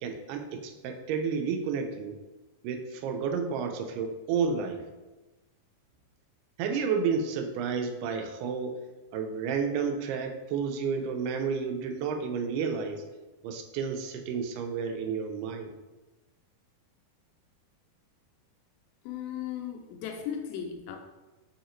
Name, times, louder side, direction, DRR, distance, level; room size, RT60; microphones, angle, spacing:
voice 1, 0.0-2.2 2.6-4.8 6.6-8.8 9.1-13.0 13.4-15.7, right 6 dB, 90° right, 2.7 m, -31 dB
voice 2, 19.1-21.0, left 9 dB, 80° left, 2.2 m, -36 dB
7.8 x 2.8 x 4.3 m
omnidirectional pair, 4.5 m